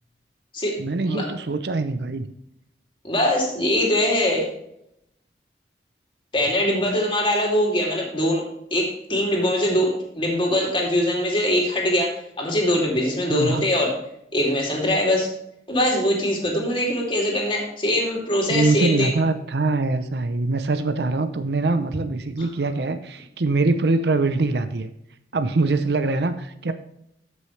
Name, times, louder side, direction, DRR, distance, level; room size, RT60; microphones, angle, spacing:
voice 1, 0.8-2.3 13.3-13.7 18.5-24.9 25.3-26.7, right 3 dB, 70° right, 10 dB, 0.6 m, -23 dB
voice 2, 3.0-4.5 6.3-8.4 8.7-13.9 14.3-15.3 15.7-19.1 22.4-22.5, left 1 dB, 30° left, -1 dB, 2.7 m, -22 dB
13.0 x 6.3 x 3.3 m, 0.78 s
head